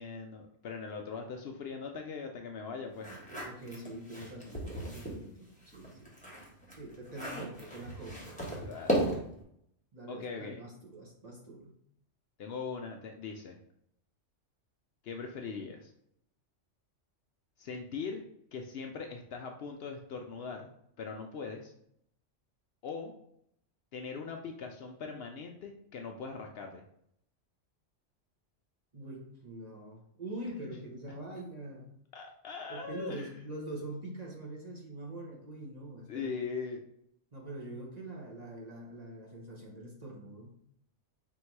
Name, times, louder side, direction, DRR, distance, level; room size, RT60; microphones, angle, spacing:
voice 1, 0.0-3.1 8.6-9.2 10.1-10.6 12.4-13.6 15.0-15.9 17.6-18.2 18.5-20.7 21.0-21.7 22.8-23.1 23.9-26.8 30.6-30.8 32.1-33.4 36.1-36.8, left 5 dB, 65° left, 3 dB, 0.7 m, -40 dB
sound 1, 3.0-5.2 5.6-9.4, right 1 dB, 5° left, 1.0 m, -36 dB
voice 2, 3.4-6.4 6.7-8.4 9.9-11.8 28.9-31.9 32.7-36.3 37.3-40.6, right 1 dB, 35° right, -2 dB, 0.9 m, -44 dB
3.8 x 2.7 x 4.5 m, 0.72 s
omnidirectional pair, 1.3 m